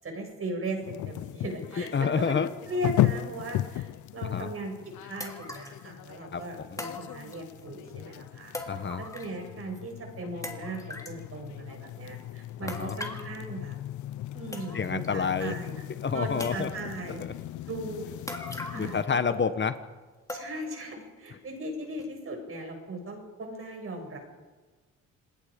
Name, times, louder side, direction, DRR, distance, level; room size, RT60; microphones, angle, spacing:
voice 1, 0.0-2.4 2.7-4.7 5.0-8.5 9.0-13.8 14.3-15.8 16.1-17.2 17.7-18.1 18.7-19.0 20.3-24.2, right 1 dB, 45° right, 3 dB, 7.0 m, -37 dB
sound 1, 0.8-19.0, left 14 dB, 75° left, 0.7 m, -36 dB
voice 2, 1.8-2.5 4.2-4.5 6.3-6.8 8.7-9.0 12.6-13.0 14.7-15.5 16.0-16.7 17.2-17.3 18.5-19.8, left 6 dB, 40° left, 11 dB, 1.2 m, -29 dB
sound 2, 4.4-4.5 5.2-5.8 6.8-7.6 8.5-9.5 9.7-9.8 10.4-11.2 12.7-13.3 14.1-14.2 14.5-15.1 15.4-15.5 16.4-17.0 18.3-19.0 19.3-19.4 20.3-20.8 21.3-21.4 22.0-22.1, left 2 dB, 10° left, 3.1 m, -40 dB
27.5 x 19.5 x 5.2 m, 1.3 s
cardioid pair, 90°, 30 cm